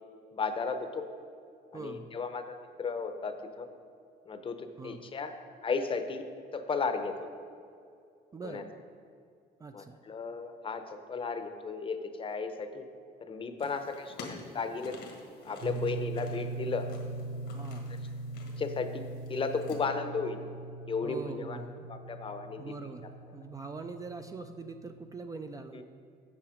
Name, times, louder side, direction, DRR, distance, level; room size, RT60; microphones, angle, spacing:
voice 1, 0.3-1.1 1.7-3.7 4.3-5.4 5.6-6.2 6.5-7.3 8.4-8.6 9.7-12.9 13.2-15.0 15.4-16.9 18.5-19.0 19.3-20.4 20.9-21.6 21.9-22.7 25.7-25.8, left 4 dB, 30° left, 8 dB, 0.7 m, -34 dB
voice 2, 1.7-2.1 4.8-5.0 8.3-8.7 9.6-10.0 13.6-13.9 17.5-17.9 21.0-21.9 22.6-25.8, right 4 dB, 20° right, 7 dB, 0.3 m, -43 dB
sound 1, 13.6-19.8, left 3 dB, 80° left, 1.6 m, -50 dB
sound 2, 15.6-25.2, right 3 dB, 50° right, 0.7 m, -41 dB
8.7 x 5.9 x 5.0 m, 2.4 s
cardioid pair, 110°, 17 cm